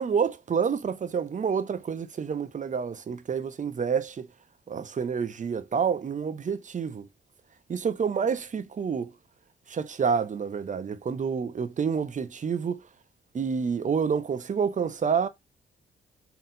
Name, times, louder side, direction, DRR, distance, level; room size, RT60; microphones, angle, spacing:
voice 1, 0.0-4.3 4.7-7.1 7.7-9.1 9.7-12.8 13.3-15.3, right 6 dB, 40° right, 0.6 m, -28 dB
3.9 x 3.9 x 2.6 m
cardioid pair, 65°, 20 cm